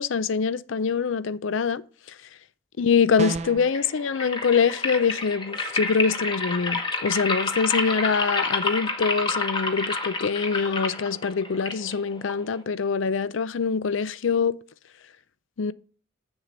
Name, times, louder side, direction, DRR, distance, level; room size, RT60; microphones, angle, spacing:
voice 1, 0.0-1.8 2.8-14.6 15.6-15.7, left 5 dB, 70° left, 0.5 m, -24 dB
sound 1, 3.2-3.7, right 3 dB, 35° right, 0.6 m, -30 dB
sound 2, 3.6-12.6, left 3 dB, 25° left, 1.1 m, -29 dB
7.4 x 7.1 x 5.2 m
head